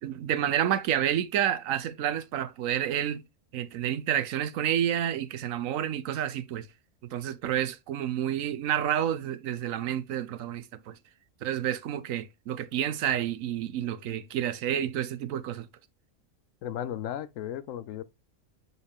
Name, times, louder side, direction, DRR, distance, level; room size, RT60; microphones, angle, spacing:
voice 1, 0.0-3.2 3.5-6.7 7.0-11.0 11.4-15.7, right 10 dB, 90° right, 1.1 m, -29 dB
voice 2, 16.6-18.0, left 10 dB, 75° left, 0.9 m, -35 dB
6.9 x 3.9 x 3.5 m
omnidirectional pair, 1.4 m